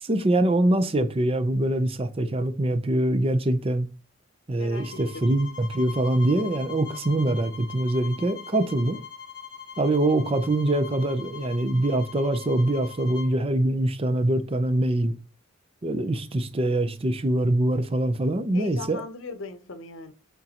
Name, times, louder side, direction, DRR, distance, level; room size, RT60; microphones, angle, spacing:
voice 1, 0.0-3.9 4.5-9.0 9.8-15.1 15.8-19.0, right 1 dB, 30° right, 0.6 m, -24 dB
voice 2, 4.6-5.3 18.5-20.1, left 3 dB, 85° left, 0.8 m, -39 dB
sound 1, 4.7-13.3, left 7 dB, 25° left, 3.2 m, -42 dB
8.9 x 3.6 x 2.9 m
head